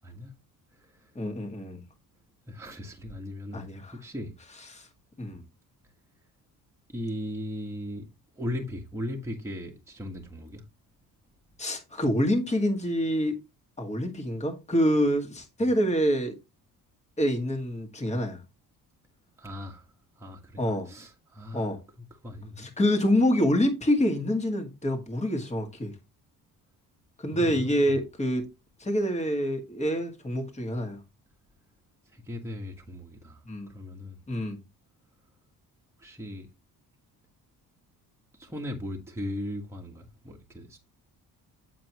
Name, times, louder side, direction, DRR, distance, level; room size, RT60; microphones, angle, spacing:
voice 1, 0.0-0.3 0.8-1.1 2.5-3.6 3.9-4.3 6.9-8.1 8.3-10.6 19.4-21.7 22.0-22.7 27.3-28.0 32.1-34.2 36.0-36.5 38.3-40.8, left 1 dB, 5° right, 1.5 m, -38 dB
voice 2, 1.2-1.8 3.5-3.9 4.7-4.9 5.2-5.4 11.6-13.4 13.8-16.3 17.2-18.4 20.6-20.9 21.5-21.8 22.6-25.9 27.2-28.5 28.8-31.0 33.5-33.7 34.3-34.6, equal, 20° left, 1.9 m, -26 dB
7.5 x 6.1 x 3.0 m
cardioid pair, 100°, 38 cm